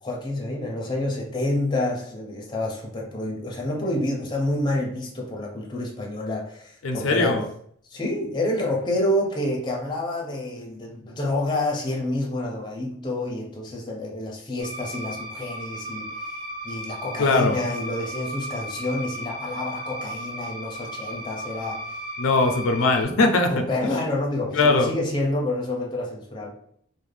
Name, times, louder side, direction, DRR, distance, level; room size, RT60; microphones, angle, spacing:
voice 1, 0.0-7.4 7.9-16.3 16.6-21.8 22.7-22.8 23.5-26.5, left 1 dB, 20° left, -2 dB, 0.5 m, -28 dB
voice 2, 6.8-7.4 17.2-17.6 22.2-23.5 24.5-24.9, left 3 dB, 85° left, 5 dB, 0.4 m, -20 dB
sound 1, 14.6-23.0, equal, 30° right, 0.5 m, -35 dB
2.4 x 2.0 x 3.2 m, 0.64 s
head